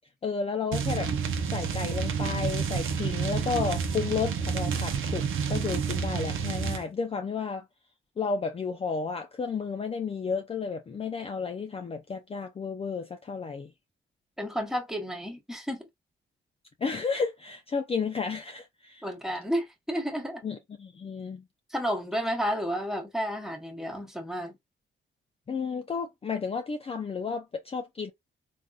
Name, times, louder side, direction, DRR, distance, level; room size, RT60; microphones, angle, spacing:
voice 1, 0.2-1.1 1.5-7.6 8.2-13.7 16.8-19.1 20.4-21.4 25.5-28.1, left 5 dB, 30° left, 0.4 m, -32 dB
sound 1, 0.7-6.8, right 6 dB, 80° right, 0.7 m, -29 dB
Engine, 1.4-6.4, right 4 dB, 55° right, 1.1 m, -49 dB
voice 2, 14.4-15.9 19.0-20.4 21.7-24.5, equal, ahead, 1.0 m, -31 dB
3.5 x 2.5 x 2.3 m
cardioid pair, 90°, 20 cm